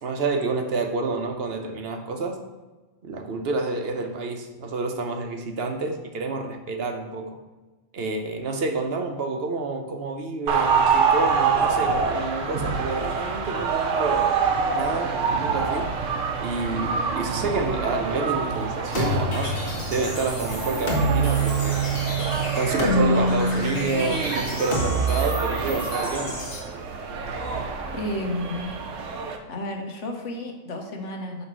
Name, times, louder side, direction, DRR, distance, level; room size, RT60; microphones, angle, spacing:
voice 1, 0.0-2.4 3.0-7.4 7.9-14.2 14.7-15.9 16.4-19.5 19.9-21.8 22.4-26.4, right 3 dB, 55° right, 4 dB, 1.0 m, -29 dB
sound 1, 10.5-29.4, right 5 dB, 75° right, 1.1 m, -26 dB
sound 2, 18.9-26.6, right 1 dB, 45° left, 1.7 m, -26 dB
voice 2, 27.9-28.8 29.5-31.5, left 1 dB, 65° left, 2 dB, 1.4 m, -32 dB
9.4 x 3.2 x 6.1 m, 1.2 s
omnidirectional pair, 1.3 m